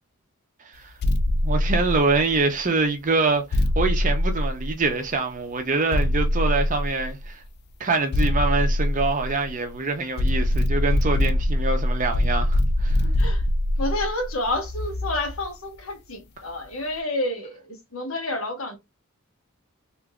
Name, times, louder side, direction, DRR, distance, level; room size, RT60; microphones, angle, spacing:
sound 1, 1.0-2.5 3.5-5.1 5.9-7.3 8.1-9.7 10.2-15.4, left 1 dB, 50° left, 0.4 m, -23 dB
voice 1, 1.4-7.4 7.8-13.0, right 3 dB, 35° right, 0.6 m, -25 dB
voice 2, 13.0-13.4 13.8-18.8, left 1 dB, 65° left, 1.1 m, -29 dB
3.7 x 2.6 x 2.3 m
head